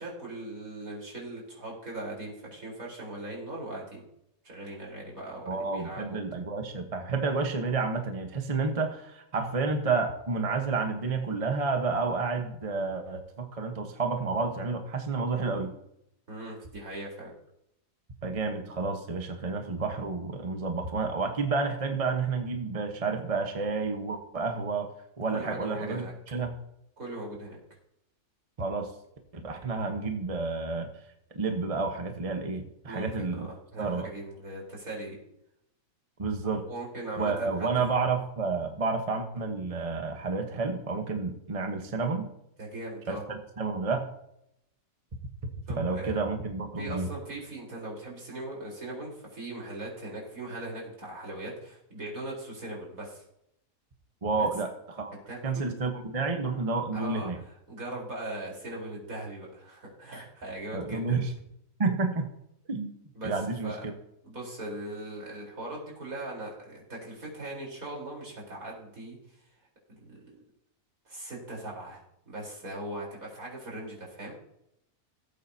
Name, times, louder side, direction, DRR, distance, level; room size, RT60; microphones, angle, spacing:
voice 1, 0.0-4.0 4.4-6.2 16.3-17.3 25.3-26.1 27.0-27.6 32.9-33.3 33.7-35.2 36.4-37.7 42.6-43.2 45.7-46.1 46.8-53.2 54.4-54.5 55.3-55.7 56.9-57.3 57.7-61.2 63.1-63.8 64.2-69.2 69.9-70.4 71.0-72.0 72.3-74.3, right 1 dB, 75° right, -3 dB, 4.5 m, -39 dB
voice 2, 5.5-15.7 18.2-24.9 25.2-26.5 28.6-28.9 29.3-31.0 31.3-33.5 33.8-34.1 36.2-36.6 37.2-42.3 43.1-44.1 45.8-47.1 54.2-55.2 55.4-57.4 60.7-61.3 61.8-62.3 62.7-62.9 63.2-63.9, right 4 dB, 25° right, 5 dB, 1.0 m, -30 dB
18.0 x 8.5 x 2.8 m, 0.77 s
omnidirectional pair, 1.5 m